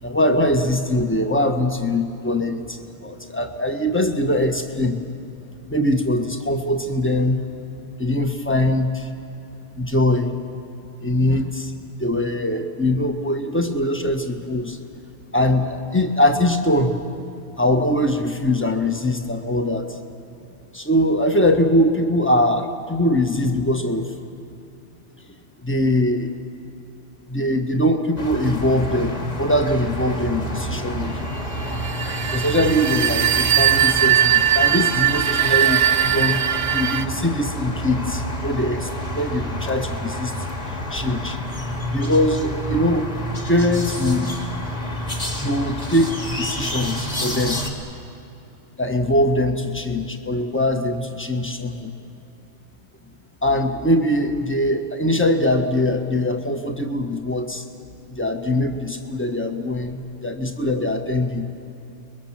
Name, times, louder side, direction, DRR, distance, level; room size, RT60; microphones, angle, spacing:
voice 1, 0.0-5.0 5.7-7.4 8.0-9.1 9.7-10.3 11.0-11.7 12.0-14.8 15.3-17.0 17.6-20.0 20.7-24.1 25.6-26.3 27.3-31.3 32.3-40.3 40.9-41.4 41.9-44.3 45.4-47.6 48.8-51.9 53.4-57.7 58.1-61.5, left 1 dB, 10° left, 6 dB, 1.4 m, -22 dB
sound 1, 28.2-47.7, equal, 35° left, 2.4 m, -29 dB
sound 2, 31.7-37.1, right 11 dB, 45° right, 0.7 m, -19 dB
30.0 x 22.0 x 7.4 m, 2.8 s
omnidirectional pair, 1.2 m